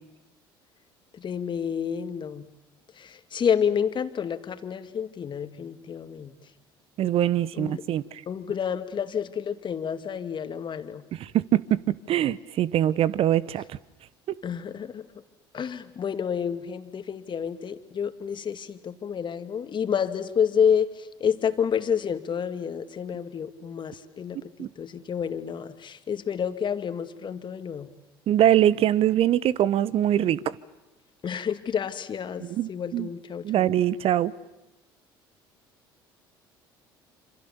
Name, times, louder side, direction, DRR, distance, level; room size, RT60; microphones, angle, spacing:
voice 1, 1.2-2.5 3.0-6.3 7.5-7.8 8.3-11.1 14.4-15.0 15.5-24.4 24.8-27.9 31.2-33.7, left 7 dB, 40° left, 2.2 m, -29 dB
voice 2, 7.0-8.0 11.1-13.6 24.6-24.7 28.3-30.6 32.4-33.1 33.4-34.3, right 11 dB, 55° right, 1.0 m, -23 dB
27.5 x 26.5 x 7.1 m
hypercardioid pair, 60°, 12 cm